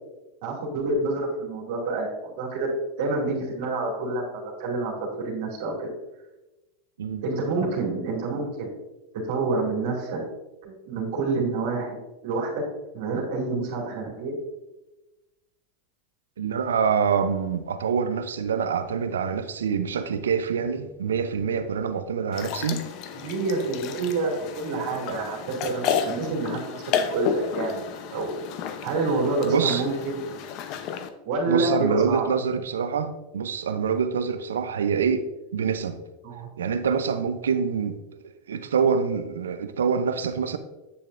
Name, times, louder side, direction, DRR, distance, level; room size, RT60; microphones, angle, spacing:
voice 1, 0.4-4.9 5.2-5.9 7.2-8.7 9.3-10.2 10.6-12.6 12.9-14.4 23.1-27.8 28.1-28.4 28.8-30.2 31.2-32.3 36.2-36.5, right 3 dB, 65° right, 2.3 m, -28 dB
voice 2, 16.4-22.8 29.4-29.8 31.5-35.2 35.5-36.0 36.6-38.0 38.5-40.6, right 6 dB, 85° right, 0.6 m, -25 dB
sound 1, 22.3-31.1, left 7 dB, 50° left, 0.7 m, -32 dB
8.5 x 7.4 x 2.5 m
hypercardioid pair, 100°, 0 cm